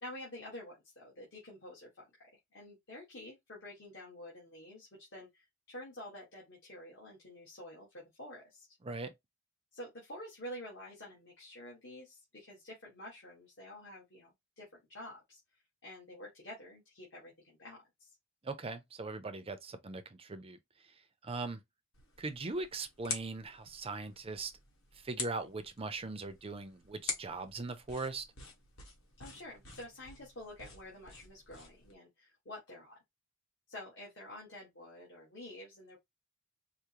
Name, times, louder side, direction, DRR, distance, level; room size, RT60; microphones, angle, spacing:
voice 1, 0.0-2.3 2.5-8.8 9.7-15.4 15.8-18.1 29.2-32.9 33.7-36.0, left 1 dB, 60° left, 1.5 m, -49 dB
voice 2, 18.4-20.6 21.2-21.6 22.2-24.5 25.0-28.2, right 3 dB, 30° right, 0.5 m, -40 dB
sound 1, 21.9-31.9, left 4 dB, 85° left, 1.3 m, -47 dB
4.8 x 2.1 x 2.9 m
head